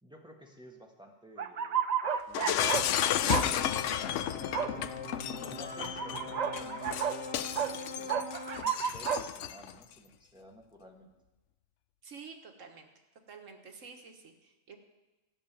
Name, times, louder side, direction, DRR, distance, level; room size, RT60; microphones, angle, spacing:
voice 1, 0.0-3.0 5.4-8.2 8.6-11.1, equal, 5° right, 1 dB, 1.6 m, -54 dB
sound 1, 1.4-2.9 3.3-3.5 4.5-4.7 5.8-7.2 7.5-7.7 8.1-9.2, right 7 dB, 50° right, 0.5 m, -31 dB
Shatter, 2.3-9.7, left 10 dB, 75° left, 0.9 m, -33 dB
sound 2, 2.8-8.6, left 3 dB, 50° left, 1.3 m, -42 dB
voice 2, 12.0-12.9 13.3-14.8, right 5 dB, 85° right, 4 dB, 1.7 m, -49 dB
13.0 x 6.8 x 9.0 m, 1.1 s
omnidirectional pair, 1.3 m